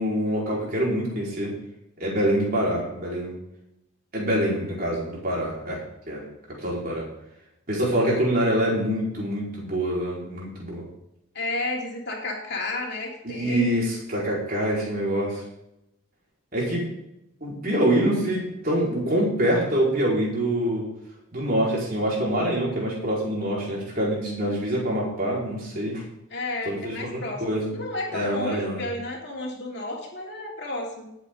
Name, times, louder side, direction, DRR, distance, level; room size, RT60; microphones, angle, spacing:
voice 1, 0.0-1.6 2.0-3.3 4.1-6.2 6.6-7.1 7.7-10.8 13.2-15.4 16.5-16.9 17.4-20.9 21.3-26.0 26.6-27.7 28.1-28.8, right 1 dB, 45° right, -4 dB, 5.1 m, -25 dB
voice 2, 11.3-13.9 26.3-31.2, left 2 dB, 55° left, -1 dB, 3.0 m, -32 dB
18.5 x 8.1 x 4.0 m, 0.84 s
head